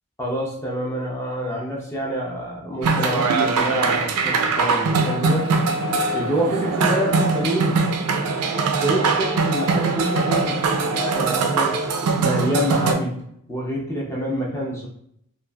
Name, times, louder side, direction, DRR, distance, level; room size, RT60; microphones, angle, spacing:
voice 1, 0.2-5.5 6.1-7.8 8.8-11.7 12.2-13.2 13.5-14.9, right 1 dB, 10° left, -3 dB, 0.5 m, -26 dB
sound 1, 2.8-12.9, right 4 dB, 85° right, 0.4 m, -22 dB
3.0 x 2.4 x 2.2 m, 0.71 s
head